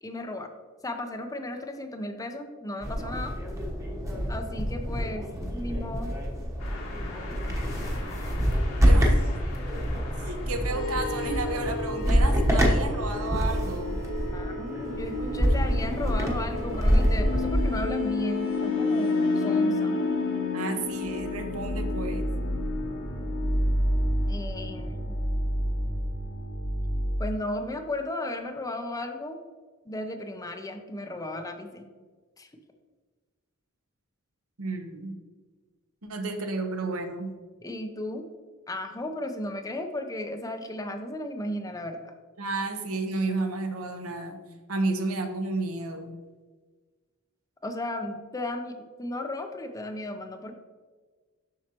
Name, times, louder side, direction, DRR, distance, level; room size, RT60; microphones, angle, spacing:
voice 1, 0.0-0.5 0.8-3.3 4.3-5.3 5.5-6.2 14.3-20.0 24.3-25.2 27.2-29.4 29.9-31.8 32.4-32.5 37.6-38.2 38.7-42.1 47.6-50.6, left 1 dB, 15° left, 6 dB, 0.5 m, -35 dB
sound 1, 2.8-17.8, equal, 15° right, 1.0 m, -26 dB
sound 2, 6.6-11.9, left 2 dB, 80° left, 2.0 m, -42 dB
voice 2, 8.9-9.3 10.2-14.0 20.5-22.3 34.6-35.1 36.0-37.3 42.4-44.4 44.7-46.1, right 3 dB, 70° right, 5 dB, 0.9 m, -32 dB
sound 3, 10.7-27.2, left 2 dB, 60° left, 1.2 m, -29 dB
7.4 x 6.3 x 2.9 m, 1.4 s
head